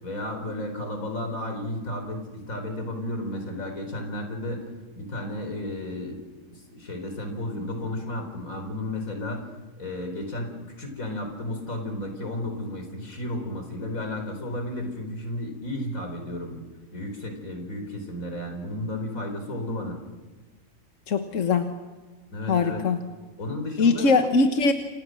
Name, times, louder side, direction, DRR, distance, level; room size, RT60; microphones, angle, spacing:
voice 1, 0.0-4.7 4.9-6.2 6.5-9.5 9.8-16.6 16.9-20.0 22.3-22.8 23.4-24.1, left 1 dB, 90° left, 4 dB, 4.7 m, -33 dB
voice 2, 21.1-21.6 22.5-23.0 23.8-24.7, left 4 dB, 70° left, 7 dB, 1.7 m, -21 dB
29.0 x 26.0 x 6.4 m, 1.3 s
omnidirectional pair, 1.4 m